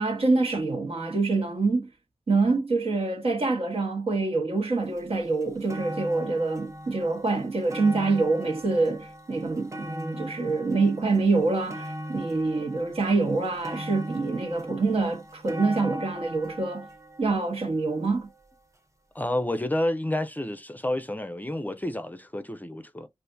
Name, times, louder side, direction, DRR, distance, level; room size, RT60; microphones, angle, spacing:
voice 1, 0.0-1.9 2.3-16.9 17.2-18.3, right 3 dB, 70° right, 1.2 m, -26 dB
sound 1, 5.0-5.1 5.4-18.6 19.4-19.5, equal, 30° right, 0.6 m, -40 dB
voice 2, 19.1-23.1, left 1 dB, 15° left, 0.5 m, -29 dB
3.5 x 2.5 x 2.6 m
wide cardioid pair, 75°, 10 cm